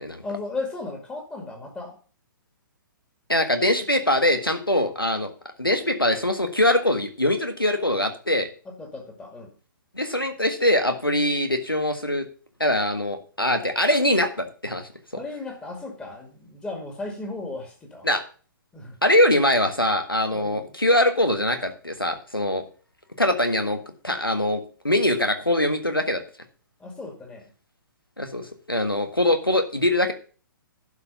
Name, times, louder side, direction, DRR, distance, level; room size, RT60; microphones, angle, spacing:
voice 1, 0.2-2.0 8.7-9.5 15.1-18.1 18.7-19.0 20.3-20.6 26.8-27.5, left 3 dB, 10° left, 3 dB, 2.2 m, -35 dB
voice 2, 3.3-5.3 5.6-8.5 9.9-12.2 12.6-15.2 18.0-18.2 19.0-22.6 23.2-26.2 28.2-30.1, left 1 dB, 90° left, 7 dB, 1.6 m, -23 dB
11.5 x 4.9 x 6.8 m, 0.40 s
figure-of-eight pair, 125°, 12 cm